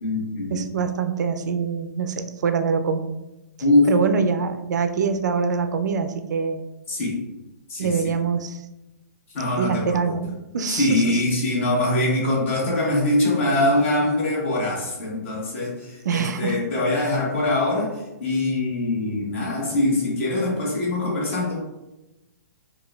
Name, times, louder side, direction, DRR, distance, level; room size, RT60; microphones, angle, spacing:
voice 1, 0.0-0.6 3.6-3.9 6.9-7.2 7.7-8.0 9.3-10.1 10.7-21.6, left 2 dB, 45° left, -4 dB, 1.3 m, -23 dB
voice 2, 0.5-3.1 3.9-6.6 7.8-8.6 9.6-11.1 16.0-16.6, right 5 dB, 75° right, 8 dB, 0.4 m, -24 dB
4.8 x 2.3 x 2.3 m, 0.98 s
hypercardioid pair, 170°, 10 cm